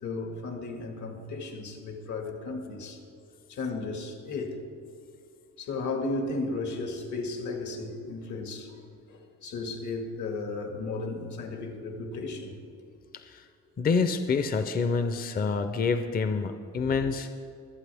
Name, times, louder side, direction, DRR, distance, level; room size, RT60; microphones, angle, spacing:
voice 1, 0.0-3.0 3.5-4.6 5.6-8.7 9.1-12.6 16.7-17.0, left 3 dB, 80° left, 3 dB, 1.9 m, -34 dB
voice 2, 13.8-17.4, left 4 dB, 30° left, 8 dB, 0.5 m, -27 dB
24.0 x 8.4 x 3.4 m, 2.5 s
wide cardioid pair, 165°, 29 cm